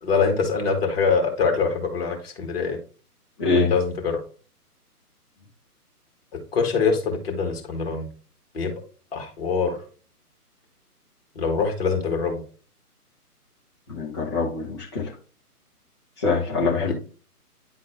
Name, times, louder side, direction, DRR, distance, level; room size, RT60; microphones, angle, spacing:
voice 1, 0.0-2.8 3.5-4.2 6.3-8.1 8.5-8.7 9.1-9.8 11.4-12.4 16.6-16.9, left 5 dB, 40° left, 2 dB, 2.1 m, -24 dB
voice 2, 3.4-3.7 13.9-15.1 16.2-16.9, left 3 dB, 15° left, -6 dB, 0.8 m, -24 dB
10.0 x 3.8 x 3.7 m, 0.39 s
figure-of-eight pair, 140°, 46 cm